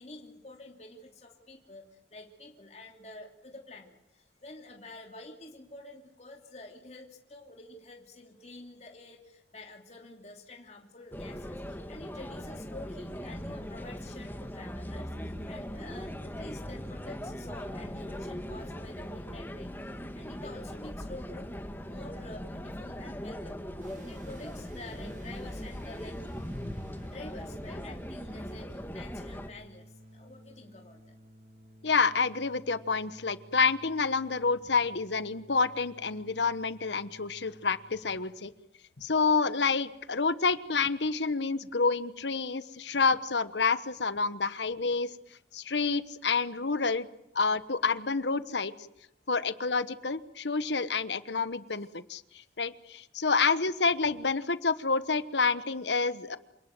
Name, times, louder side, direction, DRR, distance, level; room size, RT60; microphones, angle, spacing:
voice 1, 0.0-26.2 27.0-31.0, left 2 dB, 40° left, 2 dB, 2.9 m, -48 dB
sound 1, 11.1-29.5, equal, 10° left, 1.7 m, -40 dB
sound 2, 23.8-38.1, equal, 45° right, 2.5 m, -55 dB
voice 2, 31.8-38.5 39.0-45.1 45.5-47.1 47.3-48.7 49.3-52.2 52.6-56.4, left 4 dB, 85° left, 14 dB, 1.2 m, -28 dB
28.0 x 19.0 x 7.9 m, 0.83 s
head